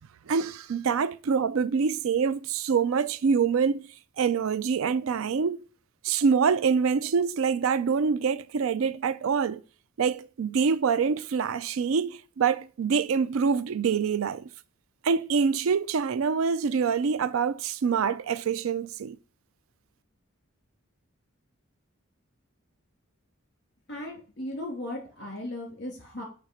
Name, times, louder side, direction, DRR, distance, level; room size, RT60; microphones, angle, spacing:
voice 1, 0.3-3.9 4.2-5.6 6.0-9.6 10.0-14.5 15.0-19.2, right 6 dB, 80° right, 0.4 m, -25 dB
voice 2, 23.9-26.2, left 1 dB, 50° left, 3.2 m, -37 dB
7.9 x 3.3 x 6.3 m
head